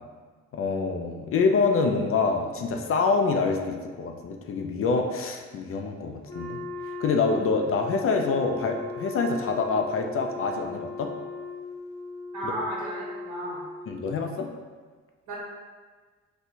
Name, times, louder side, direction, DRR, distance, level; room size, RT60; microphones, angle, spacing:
voice 1, 0.5-6.6 7.0-11.1 12.4-12.5 13.9-14.5, left 4 dB, 45° left, 3 dB, 0.4 m, -26 dB
Wind instrument woodwind instrument, 6.3-14.2, left 3 dB, 15° left, 0.8 m, -38 dB
voice 2, 12.3-13.6 15.3-15.4, right 1 dB, 80° right, -6 dB, 1.3 m, -33 dB
4.2 x 2.3 x 2.7 m, 1.4 s
cardioid pair, 90°, 30 cm